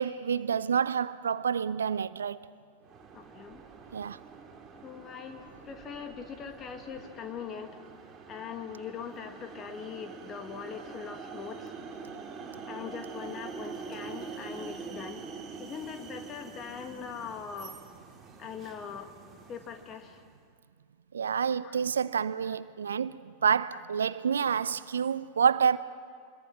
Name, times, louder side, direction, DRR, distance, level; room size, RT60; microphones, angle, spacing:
voice 1, 0.0-2.4 3.9-4.2 21.1-25.8, right 7 dB, 70° right, 0.5 m, -28 dB
sound 1, 2.8-20.3, right 5 dB, 25° right, 2.7 m, -45 dB
voice 2, 3.1-3.6 4.8-7.8 8.3-11.7 12.7-15.2 15.6-17.8 18.4-19.1 19.5-20.2 21.6-21.8, left 7 dB, 30° left, 2.0 m, -41 dB
25.5 x 22.0 x 6.2 m
figure-of-eight pair, 90°, 0 cm